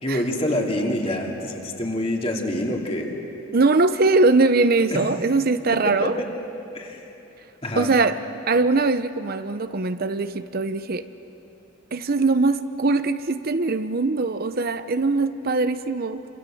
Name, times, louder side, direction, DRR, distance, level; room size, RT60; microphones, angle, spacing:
voice 1, 0.0-3.1 4.9-5.0 5.8-6.3 6.7-7.0 7.6-7.9, left 1 dB, 30° left, 0 dB, 3.0 m, -26 dB
voice 2, 3.5-6.2 7.8-11.0 11.9-16.3, right 3 dB, 50° right, 11 dB, 0.7 m, -21 dB
28.5 x 26.5 x 7.8 m, 2.9 s
head